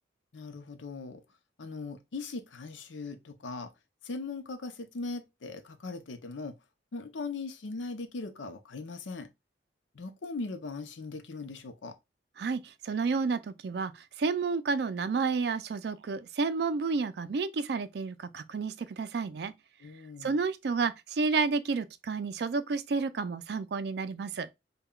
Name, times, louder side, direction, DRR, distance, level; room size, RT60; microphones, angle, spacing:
voice 1, 0.3-1.2 1.6-3.7 4.0-6.5 6.9-9.3 9.9-12.0 19.8-20.4, left 3 dB, 90° left, 0.6 m, -39 dB
voice 2, 12.4-19.5 20.2-24.5, right 4 dB, 60° right, 0.4 m, -31 dB
5.5 x 2.2 x 2.2 m
head